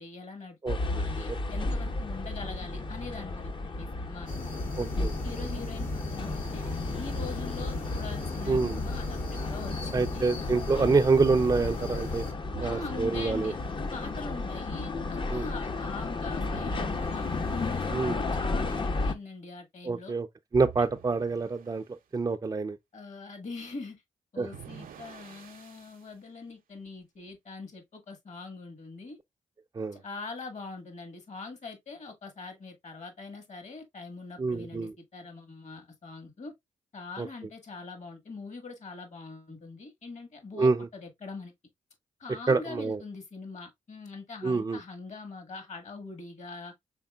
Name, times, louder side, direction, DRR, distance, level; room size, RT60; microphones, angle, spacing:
voice 1, 0.0-4.4 5.2-10.3 12.6-13.5 13.9-20.1 22.9-24.0 24.3-29.2 29.9-36.5 36.9-41.5 42.2-46.7, left 3 dB, 55° left, 1.6 m, -43 dB
voice 2, 0.6-1.0 4.8-5.1 8.5-8.8 9.9-12.2 12.6-13.5 15.3-15.5 17.9-18.2 19.8-20.3 20.5-22.8 24.4-24.5 29.7-30.0 34.4-34.9 37.2-37.3 40.6-40.8 42.5-43.0 44.4-44.8, right 4 dB, 25° right, 0.4 m, -26 dB
sound 1, 0.7-19.1, left 3 dB, 35° left, 0.6 m, -33 dB
sound 2, 4.3-12.3, left 2 dB, 75° left, 1.4 m, -36 dB
sound 3, 12.5-14.0 16.5-18.0 20.5-21.9 24.5-26.1, right 8 dB, 80° right, 0.6 m, -47 dB
5.1 x 3.5 x 2.3 m
cardioid pair, 60°, 14 cm